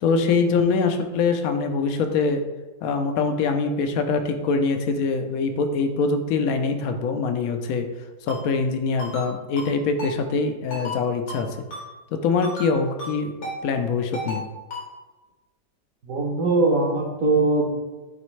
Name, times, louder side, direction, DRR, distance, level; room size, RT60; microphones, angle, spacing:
voice 1, 0.0-2.4 2.8-7.9 8.3-11.6 12.1-14.4, left 4 dB, 70° left, 6 dB, 0.9 m, -23 dB
Ringtone, 8.3-8.4 9.0-9.3 9.6-9.7 10.0-10.1 10.7-11.0 11.3-11.4 11.7-11.8 12.4-12.7 13.0-13.1 13.4-13.6 14.1-14.4 14.7-14.8, left 1 dB, 90° left, 2.5 m, -33 dB
voice 2, 16.0-17.8, right 2 dB, 55° right, 0 dB, 1.2 m, -21 dB
9.3 x 3.3 x 3.1 m, 1.2 s
omnidirectional pair, 1.9 m